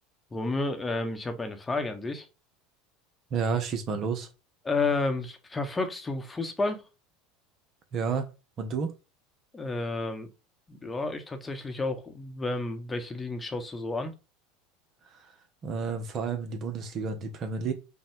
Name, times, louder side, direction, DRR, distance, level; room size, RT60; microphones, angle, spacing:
voice 1, 0.3-2.3 4.6-6.8 9.5-10.3 10.7-14.1, left 3 dB, 15° left, 1.0 m, -31 dB
voice 2, 3.3-4.3 7.9-8.3 8.6-8.9 15.1-15.2 15.6-17.7, right 5 dB, 45° right, 0.9 m, -30 dB
5.3 x 2.3 x 3.5 m
hypercardioid pair, 80°, 0 cm